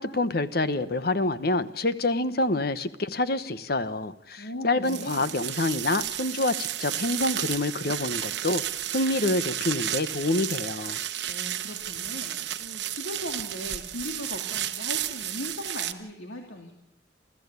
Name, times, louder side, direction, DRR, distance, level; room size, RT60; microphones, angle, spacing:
voice 1, 0.0-8.6 8.9-11.0, left 2 dB, 55° left, 13 dB, 1.1 m, -27 dB
voice 2, 4.4-5.4 11.3-16.7, left 1 dB, 85° left, 2 dB, 2.7 m, -38 dB
sound 1, 4.9-15.9, right 12 dB, 65° right, 1.2 m, -32 dB
28.5 x 14.5 x 8.3 m, 0.86 s
head